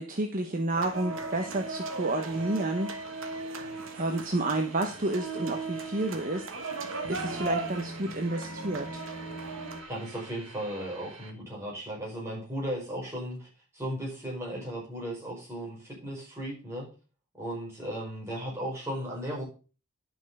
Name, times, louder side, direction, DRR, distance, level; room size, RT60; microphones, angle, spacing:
voice 1, 0.0-2.9 3.9-6.5 6.8-9.0, right 2 dB, 35° right, 4 dB, 1.0 m, -30 dB
sound 1, 0.7-9.8, right 3 dB, 55° right, 1.3 m, -37 dB
sound 2, 1.3-11.3, right 2 dB, 85° right, 2.3 m, -49 dB
voice 2, 9.9-16.9 17.4-19.4, equal, 10° right, -4 dB, 4.7 m, -36 dB
11.0 x 6.1 x 5.4 m, 0.36 s
head